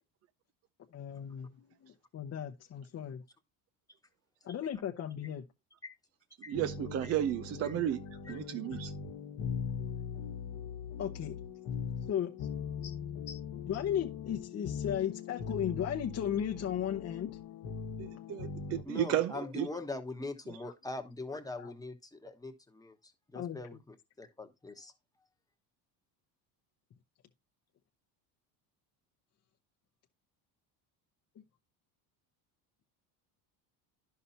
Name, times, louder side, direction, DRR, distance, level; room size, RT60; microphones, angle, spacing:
voice 1, 0.9-3.2 4.4-5.4 8.3-8.4 11.0-11.3 12.1-12.5 12.8-12.9 13.3-17.3 19.7-19.9 21.6-21.7 23.3-23.6, left 9 dB, 35° left, 0.8 m, -36 dB
sound 1, 6.5-18.8, left 6 dB, 55° left, 1.3 m, -40 dB
voice 2, 6.5-8.0 8.3-8.9 18.0-19.7, right 11 dB, 35° right, 0.4 m, -33 dB
voice 3, 18.8-24.9, left 2 dB, 10° left, 1.1 m, -42 dB
11.0 x 5.8 x 2.7 m
supercardioid pair, 110°, 44 cm